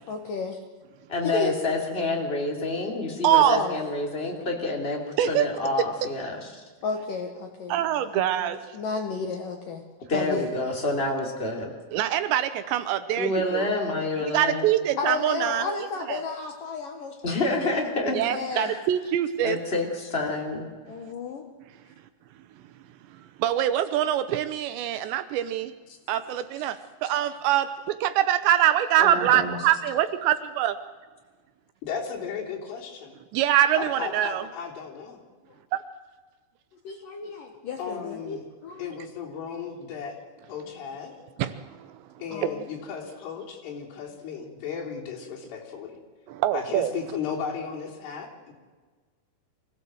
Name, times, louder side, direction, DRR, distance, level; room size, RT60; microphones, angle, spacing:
voice 1, 0.1-0.6 1.2-1.6 3.5-3.7 6.8-7.8 8.1-9.8 10.1-10.5 15.0-17.3 17.6-17.7 18.3-18.7 20.9-21.4 36.8-39.0 42.3-42.6, left 4 dB, 65° left, 3 dB, 2.3 m, -32 dB
voice 2, 1.1-5.0 5.3-6.4 10.1-11.7 13.2-14.6 17.2-18.2 18.5-18.8 19.4-20.7 29.0-29.6, left 2 dB, 15° left, 1 dB, 2.6 m, -28 dB
voice 3, 3.2-3.6 5.2-5.4 7.7-8.6 11.9-13.7 14.3-15.7 16.1-16.2 18.0-19.6 23.4-25.7 26.1-30.8 33.3-34.4 41.4-42.0 46.3-46.9, right 11 dB, 75° right, 11 dB, 2.8 m, -24 dB
voice 4, 31.8-33.1 33.8-35.2 37.8-38.4 38.8-40.2 40.5-41.1 42.2-46.0 46.5-48.5, left 6 dB, 90° left, -2 dB, 6.2 m, -35 dB
25.0 x 16.5 x 7.9 m, 1.4 s
omnidirectional pair, 5.5 m